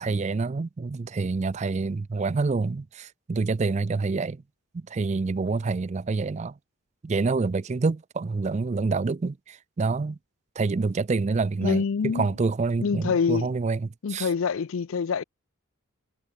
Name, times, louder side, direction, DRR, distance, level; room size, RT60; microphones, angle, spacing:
voice 1, 0.0-4.4 4.7-6.5 7.0-10.2 10.6-14.3, right 4 dB, 30° right, 0.3 m, -27 dB
voice 2, 11.6-12.3 12.8-13.5 14.0-15.2, left 5 dB, 65° left, 0.4 m, -26 dB
head